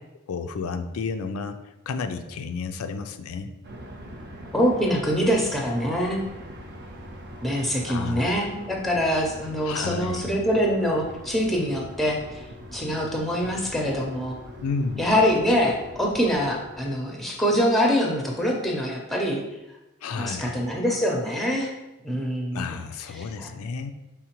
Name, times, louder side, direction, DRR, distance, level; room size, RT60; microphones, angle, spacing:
voice 1, 0.3-1.6 1.9-3.5 7.9-8.3 9.6-10.2 14.6-15.1 20.0-20.6 22.5-23.9, left 5 dB, 85° left, 8 dB, 0.4 m, -31 dB
sound 1, 3.6-17.0, equal, 50° right, 0.6 m, -42 dB
voice 2, 4.5-6.2 7.4-12.4 12.7-14.3 15.0-19.4 20.1-21.7 22.0-22.7 23.1-23.5, equal, ahead, 0 dB, 0.6 m, -24 dB
4.8 x 3.5 x 2.9 m, 0.98 s
head